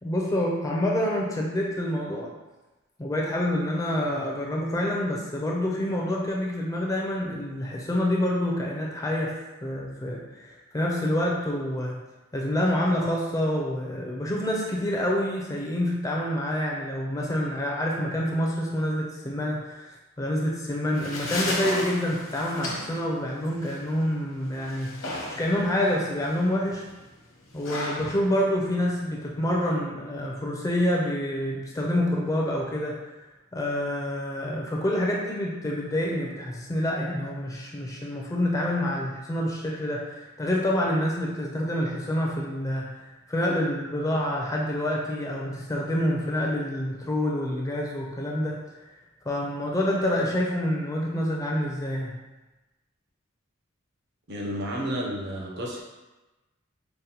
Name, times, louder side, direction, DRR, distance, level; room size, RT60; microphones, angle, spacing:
voice 1, 0.0-2.3 3.0-9.4 9.6-12.0 12.3-19.9 20.2-25.1 25.4-26.8 27.5-33.0 33.5-43.0 43.3-48.6 49.3-52.2, left 1 dB, 15° left, -2 dB, 0.4 m, -27 dB
sound 1, 20.7-29.7, left 1 dB, 75° left, 0.9 m, -36 dB
voice 2, 54.3-55.8, equal, 55° right, -2 dB, 0.6 m, -31 dB
5.1 x 2.1 x 2.8 m, 1.1 s
head